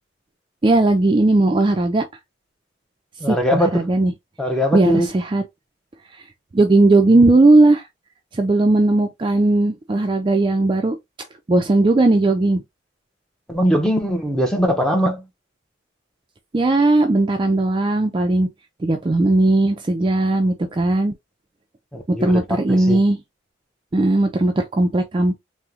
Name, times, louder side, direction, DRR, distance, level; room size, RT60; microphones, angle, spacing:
voice 1, 0.6-2.0 3.3-4.1 4.7-5.4 6.5-7.8 8.3-11.0 11.5-12.6 16.5-18.5 18.8-21.1 22.1-23.2 23.9-25.4, right 2 dB, 25° right, 0.4 m, -17 dB
voice 2, 3.2-3.9 4.4-5.1 13.5-15.2 21.9-23.0, equal, 5° left, 0.7 m, -21 dB
3.6 x 2.1 x 2.8 m
head